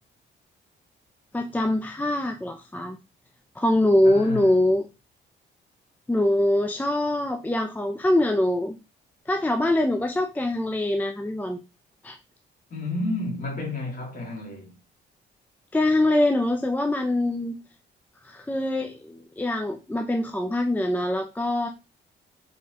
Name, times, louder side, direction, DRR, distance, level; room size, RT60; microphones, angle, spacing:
voice 1, 1.3-3.0 3.6-4.9 6.1-8.8 9.3-11.6 12.0-12.2 15.7-17.6 18.2-21.7, left 1 dB, 10° left, 0.4 m, -23 dB
voice 2, 4.0-4.6 12.7-14.8, left 2 dB, 45° left, 2.2 m, -31 dB
4.2 x 3.4 x 2.9 m
cardioid pair, 90°, 20 cm